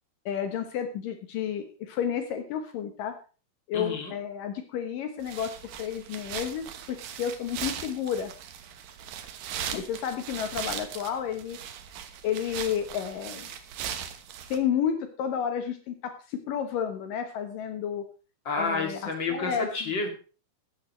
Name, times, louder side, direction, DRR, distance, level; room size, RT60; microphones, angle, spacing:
voice 1, 0.3-3.1 3.7-8.3 9.7-11.6 12.2-13.5 14.5-18.0 18.6-19.9, left 8 dB, 70° left, 7 dB, 2.5 m, -31 dB
voice 2, 3.7-4.1 18.4-20.1, left 3 dB, 35° left, 3 dB, 2.7 m, -30 dB
sound 1, 5.2-14.6, right 9 dB, 70° right, 2.8 m, -39 dB
15.0 x 12.0 x 3.1 m, 0.35 s
omnidirectional pair, 4.3 m